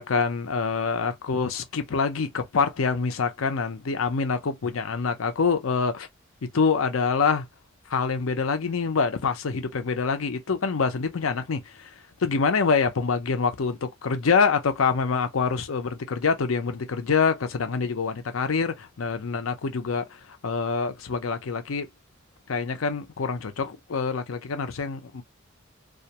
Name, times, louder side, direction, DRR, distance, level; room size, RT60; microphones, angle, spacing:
voice 1, 0.0-6.1 6.5-7.5 7.9-11.9 12.2-20.1 20.4-21.9 22.5-25.2, left 5 dB, 80° left, 0.6 m, -25 dB
2.4 x 2.2 x 2.8 m
head